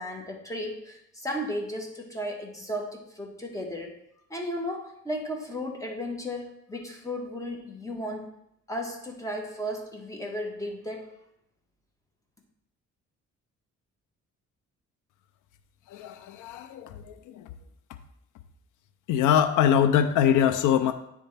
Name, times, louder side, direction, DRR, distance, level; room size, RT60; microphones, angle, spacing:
voice 1, 0.0-4.0 4.3-8.3 8.7-11.1, equal, 10° left, 1 dB, 1.3 m, -34 dB
voice 2, 15.9-17.5 19.1-20.9, left 9 dB, 85° left, 10 dB, 0.5 m, -23 dB
10.0 x 3.5 x 3.3 m, 0.78 s
cardioid pair, 90°, 30 cm